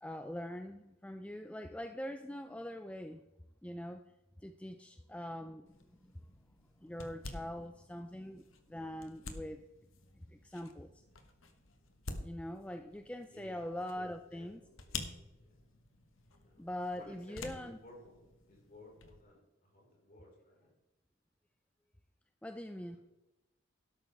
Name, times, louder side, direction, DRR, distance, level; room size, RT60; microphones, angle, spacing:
voice 1, 0.0-3.2 3.6-4.0 4.4-6.2 6.8-9.6 10.1-11.0 12.2-14.6 16.6-17.8 22.4-23.0, left 1 dB, 5° left, 7 dB, 0.4 m, -43 dB
sound 1, 5.7-19.2, left 3 dB, 75° left, 1.3 m, -50 dB
voice 2, 13.3-13.7 13.9-15.5 16.4-16.7 16.9-20.8 22.7-23.0, left 1 dB, 40° left, -3 dB, 4.7 m, -58 dB
13.0 x 11.5 x 3.5 m, 1.0 s
head